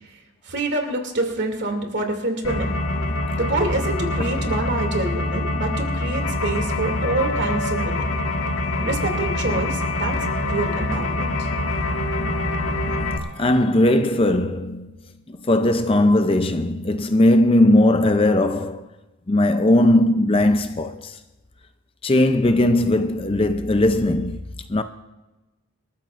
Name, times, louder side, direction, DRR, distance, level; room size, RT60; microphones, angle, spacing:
voice 1, 0.4-2.8 3.3-8.1 8.8-10.1 10.4-11.5, right 2 dB, 50° right, 2.6 m, -26 dB
sound 1, 2.4-13.2, left 2 dB, 65° left, 1.9 m, -25 dB
voice 2, 13.4-14.9 15.3-18.9 19.3-21.1 22.0-24.4 24.7-24.8, left 1 dB, 25° left, 0.5 m, -18 dB
27.0 x 13.5 x 2.5 m
head